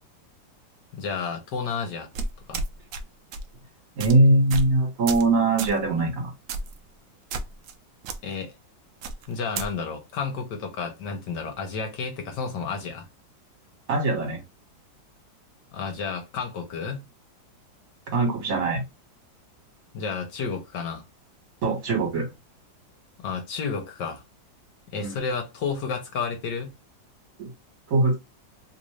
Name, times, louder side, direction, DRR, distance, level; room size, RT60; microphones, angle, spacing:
voice 1, 0.9-2.1 2.5-2.6 8.2-8.5 9.3-13.1 15.7-17.1 19.9-21.0 23.2-24.2 24.9-26.7, left 5 dB, 70° left, 1.5 m, -31 dB
sound 1, 2.1-3.0 3.3-3.5 4.0-4.1 4.5-4.7 5.1-5.3 5.6-5.8 6.5-6.8 7.3-7.7 8.0-8.2 9.0-9.7, right 3 dB, 90° right, 0.7 m, -31 dB
voice 2, 4.0-6.3 13.9-14.4 18.1-18.8 21.6-22.3 25.0-25.2 27.4-27.5 27.9-28.1, right 2 dB, 50° right, 1.8 m, -21 dB
3.5 x 2.6 x 3.1 m
omnidirectional pair, 2.1 m